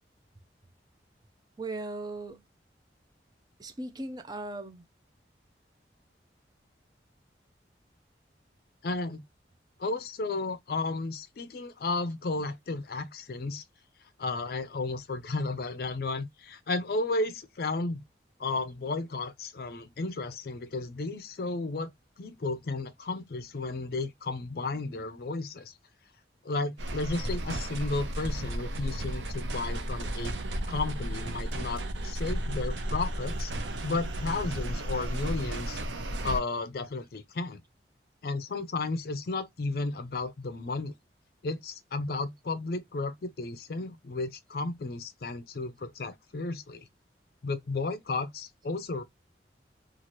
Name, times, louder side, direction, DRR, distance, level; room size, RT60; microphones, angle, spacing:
voice 1, 1.6-2.4 3.6-4.8, right 2 dB, 20° right, 0.4 m, -38 dB
voice 2, 8.8-9.2 9.8-13.6 14.2-18.0 18.4-21.9 22.2-25.7 26.4-30.4 30.7-33.5 33.8-35.8 36.2-37.6 38.2-40.9 41.4-46.9 47.4-49.0, left 3 dB, 55° left, 0.5 m, -33 dB
sound 1, 26.8-36.4, right 1 dB, 85° right, 0.6 m, -33 dB
2.8 x 2.4 x 2.9 m
head